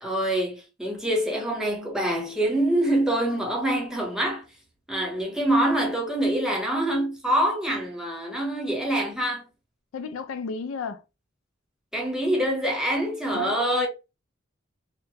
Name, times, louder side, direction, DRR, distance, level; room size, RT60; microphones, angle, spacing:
voice 1, 0.0-4.4 4.9-9.4 11.9-13.9, right 1 dB, 5° right, 0.8 m, -25 dB
voice 2, 9.9-11.0 13.3-13.9, left 5 dB, 70° left, 0.4 m, -33 dB
2.7 x 2.2 x 2.7 m
head